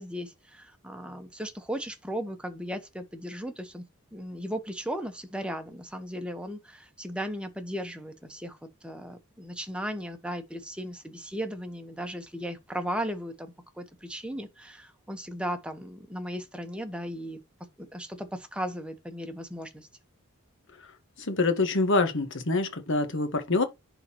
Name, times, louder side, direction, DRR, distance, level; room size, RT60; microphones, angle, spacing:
voice 1, 0.0-3.8 4.1-17.4 17.8-19.9, equal, 5° right, 1.2 m, -36 dB
voice 2, 21.2-23.6, left 3 dB, 55° left, 1.6 m, -25 dB
10.5 x 4.0 x 3.0 m
head